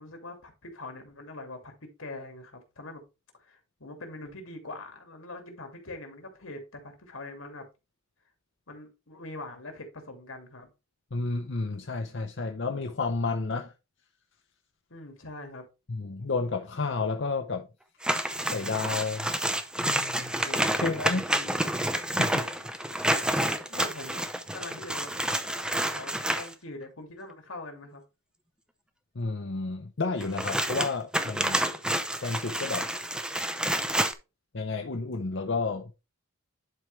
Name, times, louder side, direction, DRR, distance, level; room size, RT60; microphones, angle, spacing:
voice 1, 0.0-3.0 3.4-7.7 8.7-10.7 14.9-15.6 20.4-21.6 23.7-24.2 24.5-28.0, left 2 dB, 80° left, 2.5 m, -43 dB
voice 2, 11.1-13.7 15.9-17.7 18.4-19.3 19.8-20.3 20.8-21.2 22.2-22.5 22.9-23.1 29.1-31.6 32.2-32.9 34.5-35.9, left 3 dB, 60° left, 0.8 m, -31 dB
sound 1, 18.0-26.5 30.2-34.1, right 1 dB, 5° right, 0.6 m, -29 dB
11.0 x 4.7 x 3.2 m
head